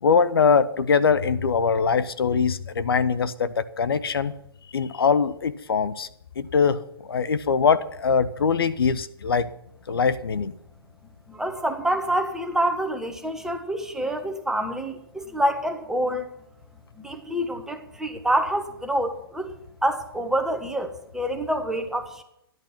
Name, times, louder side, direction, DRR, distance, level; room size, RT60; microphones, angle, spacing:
voice 1, 0.0-4.3 4.7-6.1 6.4-9.5 9.9-10.5, left 5 dB, 70° left, 15 dB, 0.8 m, -22 dB
voice 2, 11.3-16.3 17.0-19.5 19.8-22.2, right 1 dB, 5° right, 6 dB, 1.3 m, -27 dB
13.5 x 11.0 x 5.8 m, 0.78 s
figure-of-eight pair, 130°, 13 cm